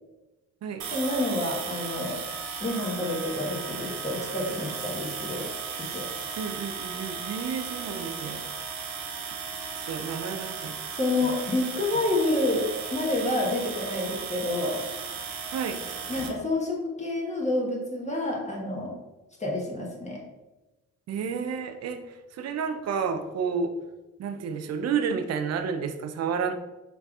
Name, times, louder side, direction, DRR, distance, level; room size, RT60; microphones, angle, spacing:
sound 1, 0.8-16.3, right 5 dB, 75° right, 0.7 m, -36 dB
voice 1, 0.9-2.2 2.6-5.5 5.8-6.1 11.0-12.7 12.9-14.8 16.1-18.9 19.4-20.2, left 2 dB, 15° left, -2 dB, 1.3 m, -28 dB
voice 2, 6.4-8.4 9.7-10.7 11.2-11.4 15.5-15.8 21.1-22.0 22.3-23.7 24.2-26.5, right 6 dB, 40° right, 7 dB, 0.5 m, -30 dB
4.6 x 3.3 x 2.4 m, 1.0 s
hypercardioid pair, 45°, 39 cm